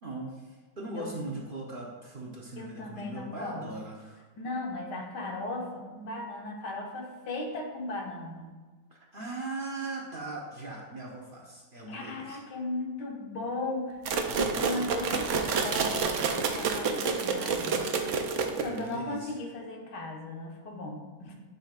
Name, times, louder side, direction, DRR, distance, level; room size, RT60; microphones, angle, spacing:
voice 1, 0.0-4.2 8.9-12.4 14.3-14.8 18.6-19.3, right 2 dB, 40° right, -2 dB, 0.9 m, -40 dB
voice 2, 2.6-3.7 4.4-8.5 11.9-17.9 18.6-21.4, left 2 dB, 90° left, 1 dB, 1.7 m, -37 dB
sound 1, 14.1-18.9, right 5 dB, 60° right, 0.8 m, -29 dB
11.5 x 5.7 x 2.4 m, 1.3 s
omnidirectional pair, 1.8 m